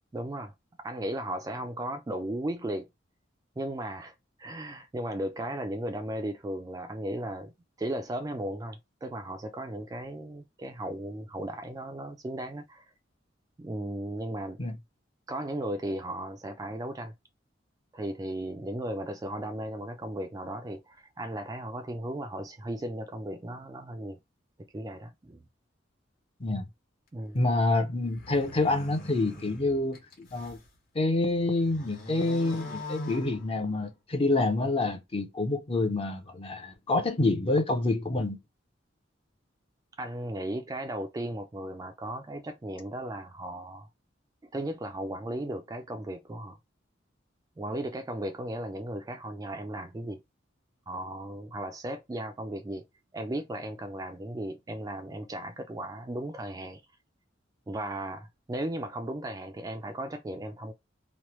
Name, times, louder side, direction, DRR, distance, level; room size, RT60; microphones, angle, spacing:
voice 1, 0.1-0.5 0.8-2.9 3.6-4.1 4.4-7.5 7.8-12.8 13.6-14.6 15.3-17.1 17.9-24.2 24.7-25.4 27.1-27.4 40.0-43.9 44.5-46.6 47.6-50.2 50.9-52.8 53.1-56.8 57.7-60.7, right 1 dB, 20° right, 0.3 m, -36 dB
voice 2, 27.3-30.6 30.9-38.4, left 2 dB, 30° left, 0.5 m, -27 dB
sound 1, 28.0-30.7 31.1-34.0, left 2 dB, 50° left, 1.1 m, -44 dB
3.0 x 2.1 x 3.0 m
head